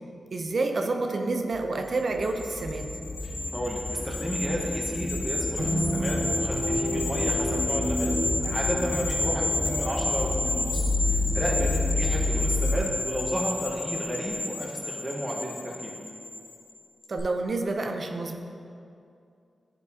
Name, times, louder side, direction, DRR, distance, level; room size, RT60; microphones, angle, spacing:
voice 1, 0.3-2.9 8.9-9.2 17.1-18.4, right 3 dB, 55° right, 4 dB, 0.6 m, -29 dB
sound 1, 1.5-12.8, left 2 dB, 30° left, 0.6 m, -30 dB
sound 2, 2.1-16.7 17.0-17.2, left 2 dB, 70° left, 1.0 m, -32 dB
voice 2, 3.2-8.1 8.4-15.9, equal, 10° right, -3 dB, 1.2 m, -32 dB
sound 3, 5.6-14.3, right 1 dB, 80° right, 1.2 m, -34 dB
10.5 x 4.4 x 2.8 m, 2.5 s
cardioid pair, 60°, 0 cm